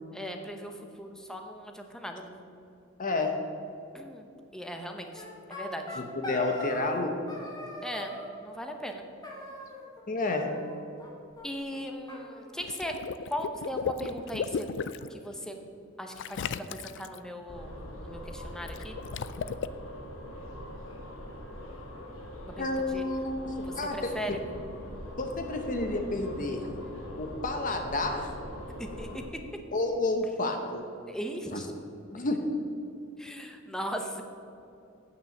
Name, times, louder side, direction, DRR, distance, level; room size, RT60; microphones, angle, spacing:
voice 1, 0.1-2.3 3.9-5.2 5.5-6.0 7.8-8.1 8.4-9.0 11.4-13.0 13.3-14.7 15.1-15.6 16.0-17.8 18.0-19.0 22.4-23.0 23.6-24.3 28.8-29.4 31.1-31.7 33.2-34.2, equal, 5° left, 4 dB, 0.8 m, -38 dB
voice 2, 3.0-3.3 6.0-7.1 10.1-10.5 22.6-24.4 25.2-26.7 27.2-28.3 29.7-30.8 31.5-31.6 32.1-32.4, left 2 dB, 40° left, 4 dB, 0.8 m, -30 dB
sound 1, 5.1-7.0 7.3-8.3 9.2-10.0 10.3-11.1 11.4-11.5 11.7-11.8 12.1-13.1, left 1 dB, 20° left, 1.6 m, -41 dB
Water / Liquid, 12.6-15.1 16.2-17.2 18.7-19.7, left 6 dB, 60° left, 0.4 m, -35 dB
sound 2, 17.5-29.3, equal, 85° left, 1.7 m, -42 dB
9.0 x 6.1 x 7.1 m, 2.6 s
head